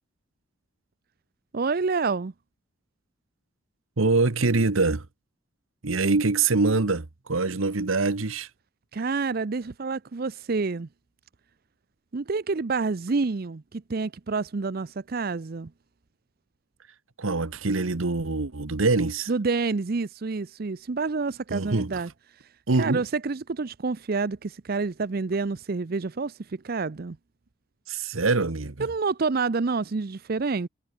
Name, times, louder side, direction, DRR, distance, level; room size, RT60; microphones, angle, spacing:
voice 1, 1.5-2.3 8.9-10.9 12.1-15.7 19.3-22.1 22.8-27.2 28.8-30.7, right 4 dB, 50° right, 0.5 m, -28 dB
voice 2, 4.0-5.1 5.8-8.5 17.2-19.3 21.5-22.0 22.7-23.0 27.9-28.9, right 3 dB, 85° right, 1.2 m, -24 dB
head